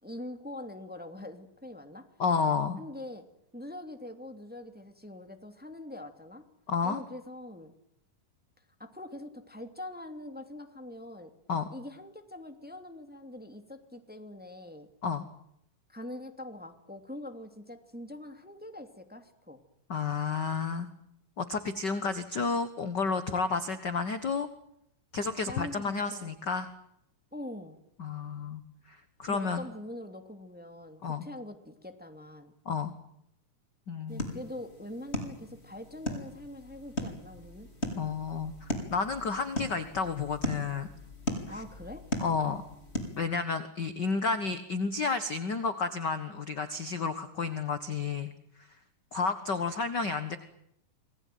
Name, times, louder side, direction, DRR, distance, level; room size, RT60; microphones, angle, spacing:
voice 1, 0.0-2.1 2.8-3.3 3.5-6.4 6.8-7.7 8.8-11.3 11.7-14.9 15.9-19.6 25.4-26.5 27.3-27.8 29.3-32.5 34.1-37.7 41.5-42.1, left 1 dB, 5° right, 7 dB, 2.1 m, -43 dB
voice 2, 2.2-2.8 6.7-7.0 11.5-11.7 15.0-15.2 19.9-20.9 21.4-24.5 25.1-26.7 28.0-28.6 28.9-29.6 31.0-31.3 32.6-32.9 33.9-34.4 38.0-40.9 42.2-42.6 43.2-48.3 49.1-50.4, left 4 dB, 45° left, 11 dB, 1.5 m, -31 dB
sound 1, 34.1-43.2, left 1 dB, 20° left, 4.6 m, -38 dB
28.0 x 20.5 x 9.3 m, 0.76 s
omnidirectional pair, 3.8 m